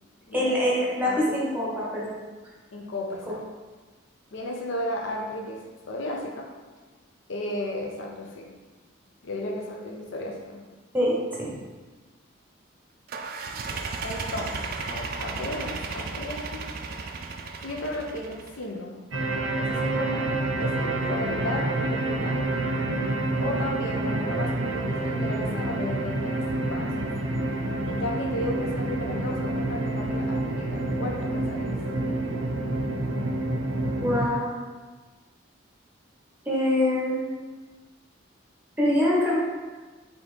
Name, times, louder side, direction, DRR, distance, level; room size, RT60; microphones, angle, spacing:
voice 1, 0.3-2.2 10.9-11.5 34.0-34.5 36.5-37.3 38.8-39.3, left 1 dB, 10° right, -6 dB, 0.8 m, -24 dB
voice 2, 2.7-3.4 4.3-6.5 7.3-8.5 9.2-10.6 14.0-16.6 17.6-19.0 19.6-20.3 20.6-22.6 23.4-26.9 27.9-31.7, left 1 dB, 70° left, 1 dB, 0.5 m, -34 dB
sound 1, 13.1-18.6, right 4 dB, 50° right, 0.3 m, -34 dB
sound 2, 19.1-34.3, right 2 dB, 85° right, 0.6 m, -28 dB
4.1 x 3.5 x 3.2 m, 1.3 s
head